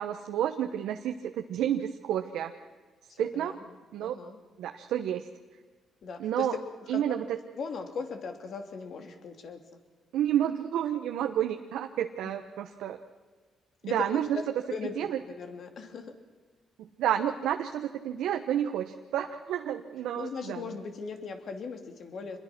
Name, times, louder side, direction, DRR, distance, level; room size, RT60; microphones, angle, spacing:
voice 1, 0.0-2.5 3.2-3.6 3.9-4.2 4.6-5.3 6.2-6.5 6.9-7.2 10.1-13.0 13.8-14.4 15.0-15.1 16.8-20.6, right 10 dB, 85° right, 5 dB, 1.1 m, -30 dB
voice 2, 3.1-4.4 6.0-6.5 6.9-7.2 7.5-9.6 13.8-14.9 15.3-16.1 20.2-22.4, left 5 dB, 60° left, 6 dB, 2.9 m, -39 dB
27.0 x 22.0 x 6.1 m, 1.4 s
cardioid pair, 90°, 0 cm